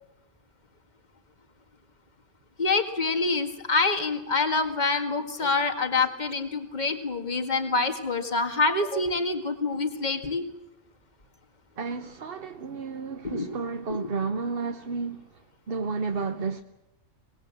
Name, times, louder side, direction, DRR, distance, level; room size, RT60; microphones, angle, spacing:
voice 1, 2.6-10.4 13.2-13.6 13.9-14.1, left 3 dB, 30° left, 2.1 m, -26 dB
voice 2, 11.8-15.4 15.7-16.6, right 4 dB, 45° right, 1.1 m, -32 dB
25.0 x 20.0 x 7.7 m
omnidirectional pair, 1.4 m